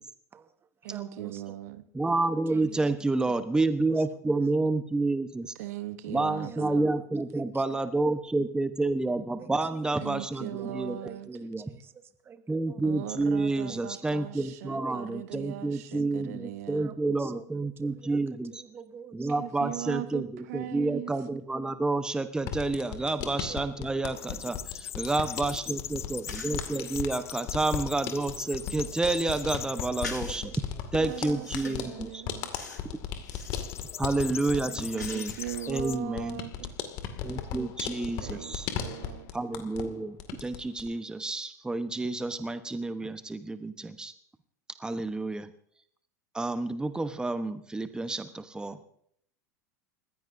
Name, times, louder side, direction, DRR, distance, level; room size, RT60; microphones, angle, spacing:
voice 1, 0.3-1.6 2.3-2.9 3.2-4.0 6.4-7.0 7.3-7.8 9.4-12.8 13.7-14.2 14.8-15.5 16.7-17.5 17.8-18.2 18.5-19.4 23.5-23.6 26.5-26.6 29.0-29.1 30.0-30.6 31.2-31.7 34.7-34.8 35.5-35.6 37.3-37.5, right 6 dB, 25° right, 10 dB, 1.5 m, -48 dB
voice 2, 0.8-1.8 5.5-6.9 10.0-11.3 12.8-16.9 19.4-21.1 31.0-32.5 34.9-36.7 38.2-39.3, right 14 dB, 60° right, 11 dB, 1.1 m, -39 dB
voice 3, 1.9-5.5 6.1-11.0 11.3-11.7 12.5-18.6 19.1-30.5 30.9-32.2 34.0-35.4 35.7-36.4 37.2-38.7 39.3-44.1 44.8-45.5 46.3-48.8, right 2 dB, 10° right, 10 dB, 1.0 m, -29 dB
sound 1, 22.4-39.9 40.2-40.9, left 8 dB, 50° left, 2.3 m, -37 dB
sound 2, 24.1-30.1 30.6-31.1 33.3-36.0, left 9 dB, 30° left, 0.6 m, -41 dB
sound 3, 26.3-26.8 27.3-29.5 30.0-30.4 31.0-31.9 32.5-32.9 33.2-33.7 34.2-35.7, left 4 dB, 90° left, 2.2 m, -44 dB
30.0 x 15.5 x 2.7 m, 0.69 s
figure-of-eight pair, 85°, 9 cm